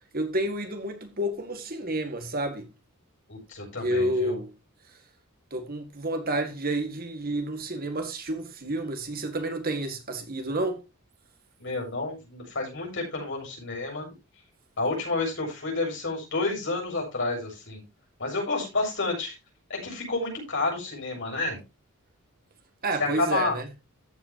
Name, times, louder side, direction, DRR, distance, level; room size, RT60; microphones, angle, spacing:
voice 1, 0.1-2.7 3.8-4.5 5.5-10.8 22.8-23.7, right 1 dB, 45° right, 1.9 m, -30 dB
voice 2, 3.3-4.4 11.6-14.1 14.8-17.8 18.2-19.4 19.7-21.6 23.0-23.6, left 3 dB, 55° left, 7.3 m, -30 dB
14.0 x 8.5 x 2.9 m
head